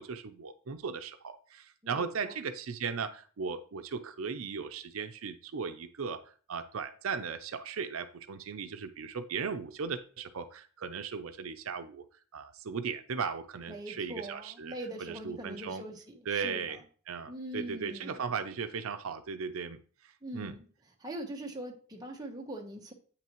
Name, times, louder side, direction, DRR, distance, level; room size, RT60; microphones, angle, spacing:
voice 1, 0.0-12.0 12.3-15.8 16.3-16.8 17.1-20.5, right 5 dB, 80° right, 9 dB, 0.6 m, -37 dB
voice 2, 1.8-2.3 13.7-16.8 17.3-18.2 20.2-20.7 21.0-22.9, right 1 dB, 20° right, 1 dB, 1.0 m, -42 dB
8.5 x 5.9 x 3.0 m, 0.42 s
head